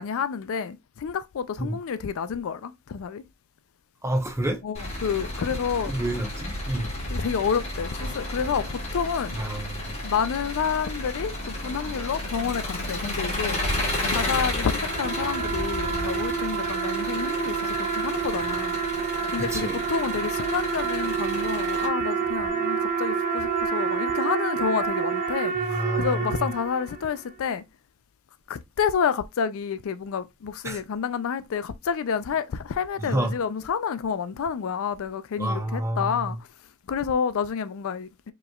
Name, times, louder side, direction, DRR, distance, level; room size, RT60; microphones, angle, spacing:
voice 1, 0.0-3.2 4.6-5.9 6.8-9.4 10.0-13.6 14.1-19.0 19.3-27.6 28.5-36.4 36.9-38.1, left 7 dB, 70° left, 0.4 m, -29 dB
voice 2, 4.0-4.6 5.9-6.9 9.3-10.0 19.5-19.8 25.5-26.5 30.6-30.8 33.0-33.3 35.4-36.4, right 1 dB, 15° right, 0.8 m, -29 dB
Engine, 4.7-21.9, left 1 dB, 30° left, 1.3 m, -32 dB
sound 1, 14.4-27.2, right 6 dB, 45° right, 0.9 m, -28 dB
4.9 x 3.1 x 2.3 m
head